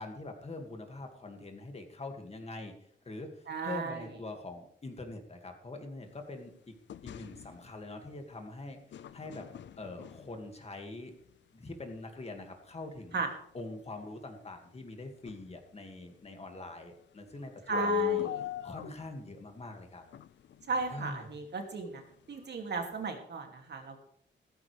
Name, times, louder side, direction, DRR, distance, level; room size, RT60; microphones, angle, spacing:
voice 1, 0.0-2.8 3.0-6.7 7.0-9.5 9.8-11.1 11.5-13.2 13.5-18.2 18.6-20.0 20.9-21.3, left 2 dB, 30° left, 4 dB, 2.3 m, -44 dB
voice 2, 3.5-4.1 13.1-13.3 17.7-18.4 20.7-22.0 22.3-24.0, right 4 dB, 60° right, 3 dB, 2.7 m, -35 dB
sound 1, 6.9-7.8 8.9-10.6 12.6-12.7 13.3-13.4 13.7-13.8 14.0-14.1 15.3-15.6 17.7-19.3 20.1-21.4 21.9-22.0 22.3-22.4 22.8-23.0, left 13 dB, 65° left, 0.5 m, -38 dB
15.5 x 14.5 x 3.5 m, 0.66 s
wide cardioid pair, 145°, 20 cm